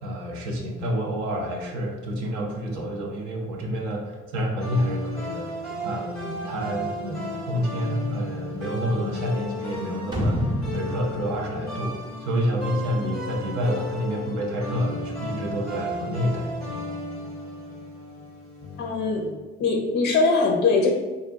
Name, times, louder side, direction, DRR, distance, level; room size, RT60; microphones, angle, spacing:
voice 1, 0.0-10.4 10.7-16.6, equal, 55° right, 0 dB, 0.7 m, -28 dB
sound 1, 4.6-19.3, left 1 dB, 80° right, 1.5 m, -34 dB
sound 2, 10.1-12.6, equal, 15° right, 0.8 m, -28 dB
voice 2, 18.8-19.3 19.6-20.9, left 3 dB, 30° left, 1 dB, 0.5 m, -21 dB
3.6 x 2.1 x 2.6 m, 1.3 s
figure-of-eight pair, 45°, 36 cm